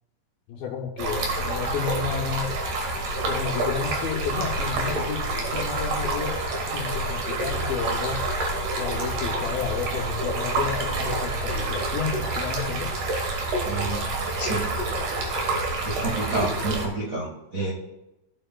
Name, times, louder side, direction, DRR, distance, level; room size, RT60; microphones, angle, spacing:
voice 1, 0.5-2.5 3.3-8.2 8.8-12.9, left 6 dB, 80° left, -3 dB, 2.7 m, -31 dB
Stream, 1.0-16.9, right 2 dB, 60° right, 2.6 m, -28 dB
voice 2, 13.6-14.1 14.4-14.7 15.8-17.7, right 2 dB, 90° right, -4 dB, 0.7 m, -29 dB
13.5 x 7.9 x 2.3 m, 0.92 s
omnidirectional pair, 4.4 m